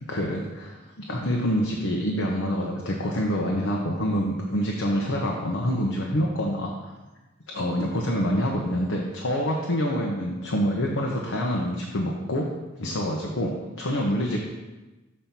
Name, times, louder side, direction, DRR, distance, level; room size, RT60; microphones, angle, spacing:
voice 1, 0.1-6.7 7.5-12.5 12.8-14.4, equal, 75° left, -1 dB, 0.9 m, -26 dB
7.1 x 4.3 x 5.9 m, 1.1 s
head